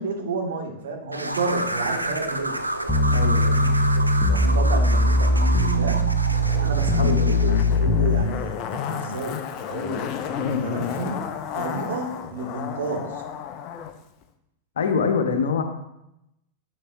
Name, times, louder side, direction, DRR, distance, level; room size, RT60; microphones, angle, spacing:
voice 1, 0.0-2.6 4.3-6.0 6.5-9.4 9.7-10.1 10.4-11.2 11.5-13.2, right 3 dB, 60° right, 1 dB, 1.4 m, -30 dB
sound 1, 1.1-7.8, right 1 dB, 85° right, 0.5 m, -30 dB
sound 2, 2.9-8.2, left 1 dB, 15° left, 0.9 m, -20 dB
voice 2, 3.1-3.8 7.0-7.8 14.8-15.6, left 5 dB, 65° left, 6 dB, 0.9 m, -25 dB
Zipper (clothing), 6.3-13.9 14.2-14.3, left 8 dB, 40° left, 0.6 m, -32 dB
10.0 x 6.4 x 2.3 m, 0.86 s
figure-of-eight pair, 90°, 0 cm